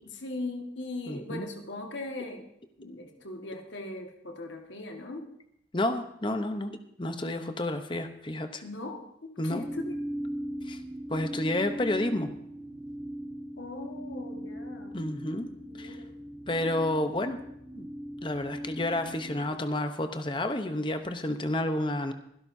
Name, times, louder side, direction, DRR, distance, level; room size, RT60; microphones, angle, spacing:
voice 1, 0.0-2.5 2.8-5.3 8.6-9.9 13.6-15.0 15.6-16.1, left 2 dB, 80° left, 3 dB, 1.7 m, -39 dB
voice 2, 1.1-1.5 5.7-8.6 9.4-9.6 10.6-10.8 11.1-12.3 14.9-15.5 15.8-16.0 16.5-17.4 17.8-17.9 18.2-22.1, left 1 dB, 25° left, 8 dB, 0.8 m, -30 dB
sound 1, 9.5-19.5, equal, 15° right, 1.4 m, -39 dB
23.5 x 12.0 x 2.7 m, 0.74 s
head